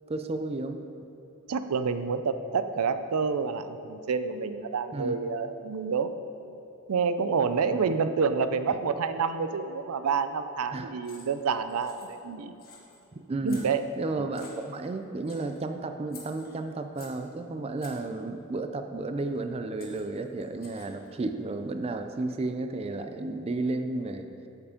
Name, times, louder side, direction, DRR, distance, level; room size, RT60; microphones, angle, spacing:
voice 1, 0.1-0.8 4.9-5.2 7.7-7.9 8.7-8.8 10.7-10.9 13.3-13.7 14.0-24.3, right 2 dB, 25° right, 7 dB, 0.4 m, -32 dB
voice 2, 1.5-6.1 6.9-12.5 13.4-13.9 14.2-14.3, right 5 dB, 85° right, 11 dB, 0.5 m, -28 dB
sound 1, 11.0-11.4 11.7-12.3 12.6-13.0 13.5-14.0 14.3-14.9 15.2-15.6 16.1-17.3 17.8-18.1 19.4-19.5 19.8-21.1, left 5 dB, 45° left, 1.5 m, -51 dB
8.6 x 7.3 x 5.0 m, 3.0 s
head